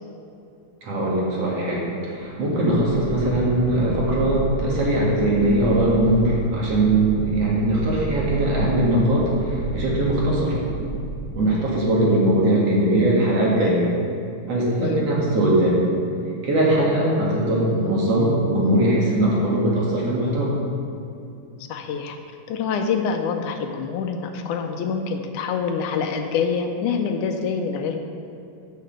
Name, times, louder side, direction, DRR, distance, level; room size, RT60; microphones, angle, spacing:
voice 1, 0.8-10.5 11.3-13.8 14.5-15.8 16.4-20.5, right 1 dB, 55° right, -5 dB, 2.8 m, -20 dB
sound 1, 2.2-11.7, right 5 dB, 90° right, 2.2 m, -31 dB
voice 2, 21.7-22.2 22.5-28.0, left 6 dB, 80° left, 5 dB, 2.0 m, -26 dB
9.7 x 6.7 x 6.5 m, 2.6 s
omnidirectional pair, 3.7 m